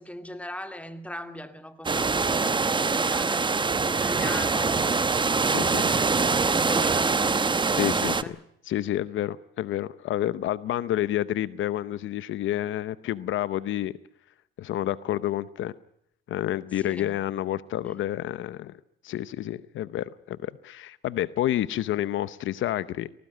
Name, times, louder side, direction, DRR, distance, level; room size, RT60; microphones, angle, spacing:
voice 1, 0.0-5.2 5.7-6.1 6.4-8.3 16.8-17.2 17.8-18.0, left 1 dB, 5° left, 2.5 m, -40 dB
sound 1, 1.8-8.2, right 4 dB, 25° right, 1.0 m, -24 dB
voice 2, 5.5-5.9 7.7-8.4 8.6-13.9 14.6-15.7 16.3-23.1, left 13 dB, 75° left, 0.8 m, -29 dB
20.5 x 18.5 x 9.0 m
cardioid pair, 90°, 20 cm